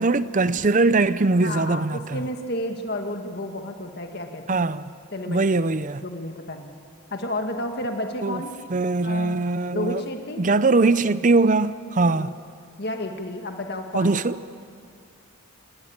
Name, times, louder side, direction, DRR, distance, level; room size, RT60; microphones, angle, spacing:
voice 1, 0.0-2.2 4.5-4.8 5.3-6.0 8.2-8.4 8.7-10.0 10.4-12.3 13.9-14.4, right 3 dB, 35° right, 0.6 m, -21 dB
voice 2, 1.4-4.6 5.1-5.5 5.9-6.7 7.1-8.5 9.0-9.4 9.7-10.4 12.1-12.3 12.8-14.1, left 1 dB, 50° left, 1.8 m, -31 dB
27.5 x 19.5 x 8.9 m
head